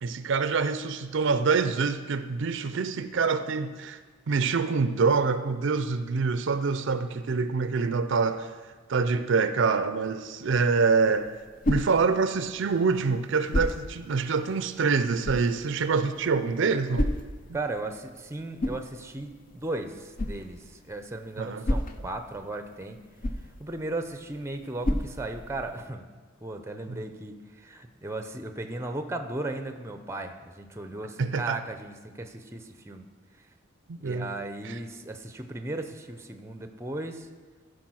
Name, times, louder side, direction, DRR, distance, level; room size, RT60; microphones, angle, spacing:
voice 1, 0.0-4.0 4.3-8.5 8.9-11.3 11.7-17.1 21.4-21.6 26.9-27.0 31.2-31.6 33.9-34.3 34.6-34.7, right 4 dB, 60° right, 11 dB, 0.5 m, -26 dB
sound 1, 11.0-25.9, left 1 dB, 40° left, 0.6 m, -35 dB
voice 2, 17.5-23.0 23.6-26.1 26.4-33.1 33.9-37.3, right 2 dB, 15° right, 7 dB, 0.6 m, -36 dB
14.5 x 4.9 x 6.2 m, 1.4 s
head